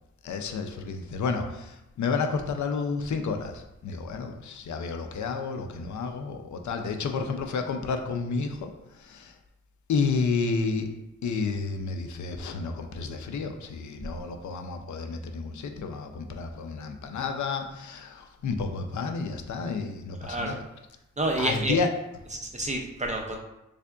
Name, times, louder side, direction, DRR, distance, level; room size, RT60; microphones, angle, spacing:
voice 1, 0.2-8.7 9.0-9.3 9.9-10.9 11.2-20.6 21.4-21.9, left 4 dB, 75° left, 5 dB, 0.5 m, -31 dB
voice 2, 20.2-20.6 21.2-21.8 22.3-23.4, right 1 dB, 25° right, 1 dB, 0.3 m, -29 dB
3.7 x 3.3 x 2.3 m, 0.92 s
wide cardioid pair, 175°, 30 cm